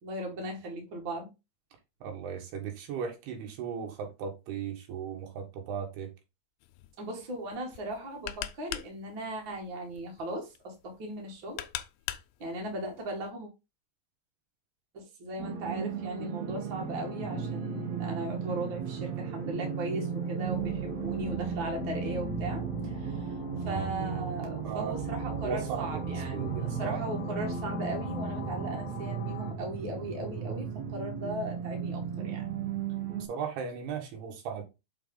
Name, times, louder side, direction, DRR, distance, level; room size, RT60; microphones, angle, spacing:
voice 1, 0.0-1.3 7.0-11.6 12.4-13.5 14.9-23.3 23.7-32.5, right 1 dB, 35° right, 2.1 m, -38 dB
voice 2, 2.0-6.1 23.7-24.0 24.7-25.0 25.2-27.0 33.3-34.6, right 7 dB, 80° right, 3.6 m, -37 dB
sound 1, 6.6-13.3, left 13 dB, 85° left, 2.7 m, -43 dB
sound 2, 15.4-33.3, right 8 dB, 65° right, 1.8 m, -35 dB
sound 3, 16.8-29.5, left 4 dB, 65° left, 2.4 m, -42 dB
6.9 x 4.7 x 3.9 m
omnidirectional pair, 4.6 m